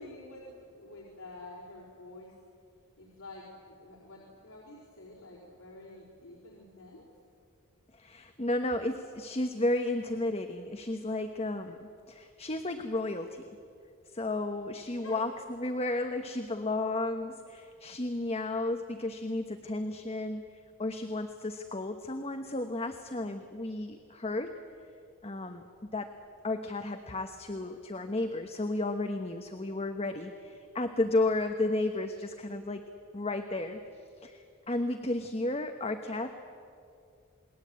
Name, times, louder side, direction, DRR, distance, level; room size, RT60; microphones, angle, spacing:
voice 1, 0.0-2.3 3.0-7.1 14.8-15.2, left 2 dB, 80° left, -5 dB, 4.8 m, -49 dB
voice 2, 7.9-13.4 14.1-24.6 25.2-25.7 25.9-26.1 26.4-32.9 33.1-33.8 34.2-36.4, left 2 dB, 30° left, 6 dB, 1.1 m, -33 dB
28.5 x 21.0 x 8.6 m, 2.4 s
head